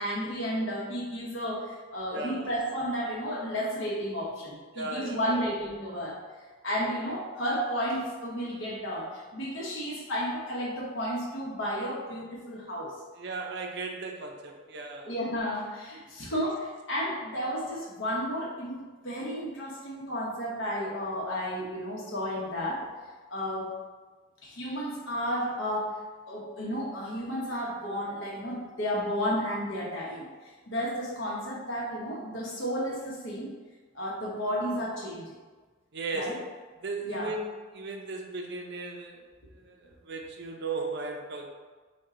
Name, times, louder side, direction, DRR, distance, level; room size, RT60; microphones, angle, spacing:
voice 1, 0.0-6.2 6.6-12.9 15.0-22.8 23.3-23.7 24.4-25.9 26.3-33.5 33.9-35.3 36.1-36.4 37.0-37.3, equal, 70° left, -4 dB, 1.0 m, -32 dB
voice 2, 2.1-2.5 4.7-5.4 13.2-15.1 16.3-16.4 35.9-36.4 36.8-39.2 39.7-41.5, right 3 dB, 55° right, 2 dB, 0.5 m, -36 dB
4.4 x 2.2 x 3.7 m, 1.3 s
head